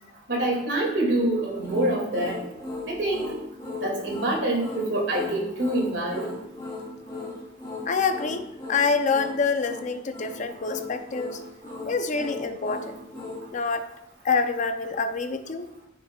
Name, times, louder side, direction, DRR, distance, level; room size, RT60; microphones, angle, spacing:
voice 1, 0.3-2.4 2.9-3.4 3.8-6.3 11.6-11.7, right 1 dB, 65° right, -1 dB, 2.3 m, -26 dB
sound 1, 1.6-13.5, left 3 dB, 20° left, 3.0 m, -37 dB
voice 2, 7.9-11.4 11.8-13.0 13.5-13.9 14.2-15.7, left 4 dB, 40° left, 8 dB, 0.5 m, -26 dB
9.2 x 6.7 x 2.4 m, 0.83 s
head